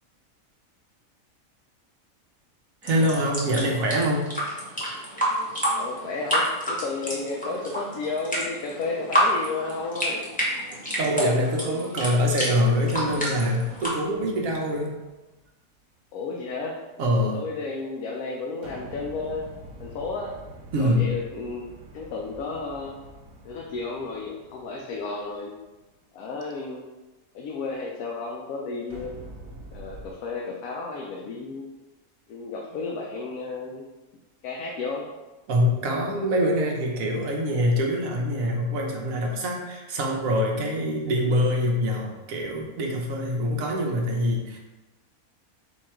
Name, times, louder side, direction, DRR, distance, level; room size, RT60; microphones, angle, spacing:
sound 1, 2.8-13.9, equal, 5° left, 0.8 m, -29 dB
voice 1, 2.8-4.3 11.0-14.9 17.0-17.4 20.7-21.2 35.5-44.6, equal, 70° right, 0 dB, 1.2 m, -24 dB
voice 2, 5.8-10.3 16.1-16.8 17.3-19.5 19.8-20.4 20.7-23.0 23.4-25.5 26.1-26.9 27.3-29.2 29.7-31.7 32.3-33.9 34.4-35.1, left 3 dB, 90° left, -1 dB, 1.1 m, -33 dB
sound 2, 12.9-15.4 18.6-25.8 28.9-30.1, right 1 dB, 90° right, 1.4 m, -46 dB
4.4 x 2.4 x 4.3 m, 1.1 s
omnidirectional pair, 1.5 m